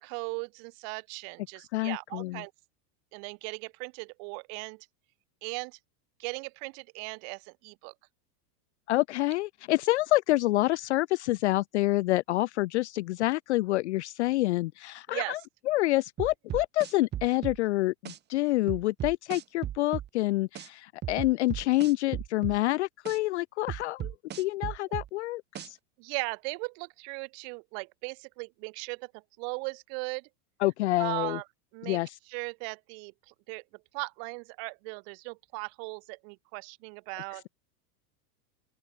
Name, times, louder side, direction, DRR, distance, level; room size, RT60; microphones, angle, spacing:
voice 1, 0.0-2.5 3.1-4.9 5.4-5.8 6.2-7.9 15.1-15.5 26.0-30.3 31.0-31.4 31.7-32.0 32.3-33.6 33.9-37.4, right 40 dB or more, 40° right, 4.6 m, -38 dB
voice 2, 1.7-2.4 8.9-15.4 15.7-25.8 30.6-31.4 31.8-32.1, left 18 dB, 50° left, 0.5 m, -27 dB
sound 1, 16.2-17.6 18.0-18.2 18.7-20.1 20.5-20.7 21.0-22.6 23.0-23.2 23.7-25.1 25.5-25.7, right 12 dB, 20° right, 3.6 m, -36 dB
open air
supercardioid pair, 175°, 48 cm